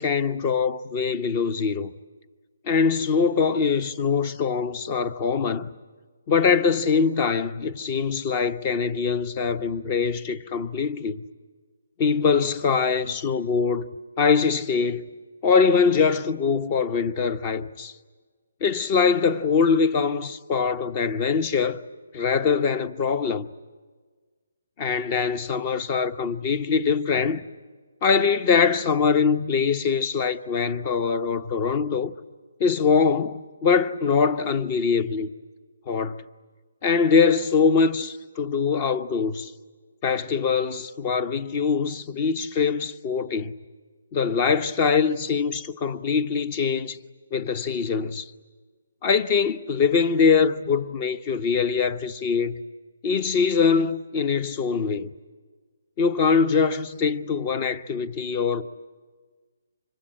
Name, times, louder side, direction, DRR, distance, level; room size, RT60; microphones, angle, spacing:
voice 1, 0.0-1.9 2.6-5.7 6.3-11.2 12.0-13.8 14.2-15.0 15.4-17.9 18.6-21.8 22.1-23.5 24.8-27.4 28.0-32.1 32.6-35.3 35.9-36.2 36.8-39.5 40.0-43.6 44.1-47.0 47.3-48.3 49.0-52.6 53.0-55.1 56.0-58.6, left 5 dB, 30° left, 0.9 m, -23 dB
26.0 x 24.5 x 8.8 m
hypercardioid pair, 160°, 0 cm